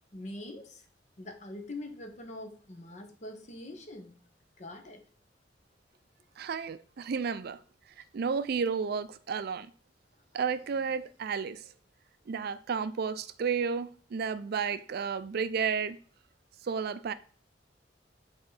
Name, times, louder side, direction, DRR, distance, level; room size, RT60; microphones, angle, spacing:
voice 1, 0.1-0.9 1.2-4.2 4.6-5.0, left 1 dB, 40° left, 1.0 m, -43 dB
voice 2, 6.4-7.6 8.1-9.7 10.3-11.7 12.3-16.0 16.6-17.1, right 6 dB, 60° right, 0.4 m, -32 dB
8.0 x 3.7 x 4.0 m
head